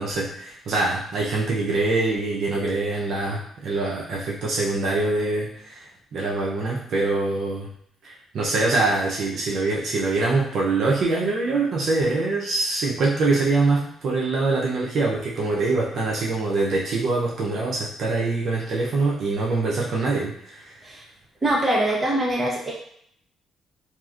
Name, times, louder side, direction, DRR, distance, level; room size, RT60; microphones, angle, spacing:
voice 1, 0.0-7.7 8.0-20.7, right 3 dB, 65° right, -4 dB, 0.6 m, -24 dB
voice 2, 21.4-22.7, right 1 dB, 20° right, -4 dB, 1.0 m, -23 dB
2.7 x 2.4 x 2.4 m, 0.66 s
cardioid pair, 90°, 0 cm